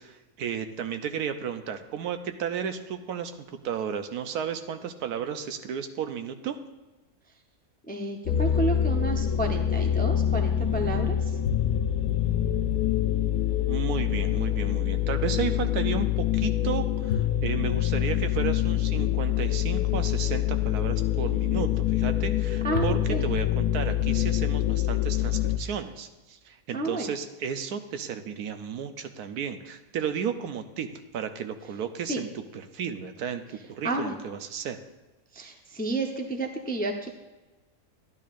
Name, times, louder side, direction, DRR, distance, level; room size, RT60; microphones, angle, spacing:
voice 1, 0.0-6.6 13.6-34.8, right 8 dB, 85° right, 8 dB, 1.2 m, -33 dB
voice 2, 7.9-11.4 22.6-23.2 26.7-27.1 32.1-32.2 33.8-34.1 35.3-37.1, right 2 dB, 10° left, 3 dB, 0.4 m, -31 dB
sound 1, 8.3-25.6, left 11 dB, 80° left, 1.1 m, -25 dB
12.0 x 11.0 x 2.5 m, 1.1 s
omnidirectional pair, 1.6 m